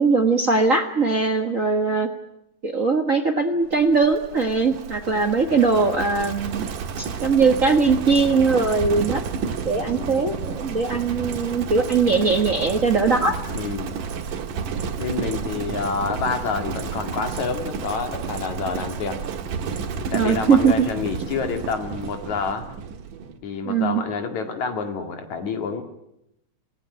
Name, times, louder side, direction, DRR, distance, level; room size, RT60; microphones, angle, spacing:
voice 1, 0.0-2.1 2.6-6.6 7.0-9.2 9.6-13.3 20.1-20.9 23.6-24.0, right 4 dB, 40° right, 8 dB, 1.1 m, -20 dB
Livestock farm animals working animals, 3.7-23.4, right 6 dB, 85° right, 3.2 m, -31 dB
voice 2, 5.7-6.1 9.9-10.2 13.5-14.0 15.0-19.2 19.9-22.7 23.4-25.8, left 5 dB, 65° left, 6 dB, 3.6 m, -28 dB
28.5 x 17.5 x 9.0 m, 0.85 s
omnidirectional pair, 3.6 m